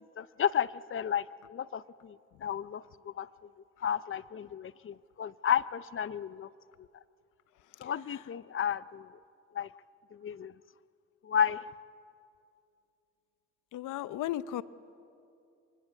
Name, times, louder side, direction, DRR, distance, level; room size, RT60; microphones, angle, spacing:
voice 1, 0.2-3.5 3.8-6.5 6.8-6.9 7.8-9.1 9.5-9.7 10.1-10.5 11.2-11.7, left 8 dB, 45° left, 17 dB, 0.7 m, -33 dB
voice 2, 13.7-14.6, left 13 dB, 85° left, 16 dB, 0.8 m, -35 dB
26.5 x 24.0 x 8.2 m, 2.6 s
cardioid pair, 90°, 30 cm